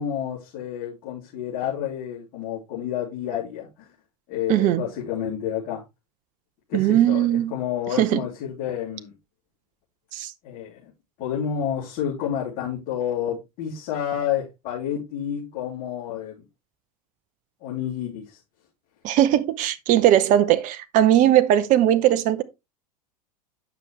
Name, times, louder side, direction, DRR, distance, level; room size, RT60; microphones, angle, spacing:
voice 1, 0.0-3.9 4.3-5.8 6.7-9.1 10.4-10.9 11.2-16.4 17.6-18.4, left 9 dB, 45° left, 3.1 m, -30 dB
voice 2, 4.5-4.8 6.7-7.5 8.0-8.2 10.1-10.3 19.0-22.4, right 12 dB, 40° right, 0.7 m, -19 dB
8.9 x 6.0 x 3.2 m
hypercardioid pair, 85°, 20 cm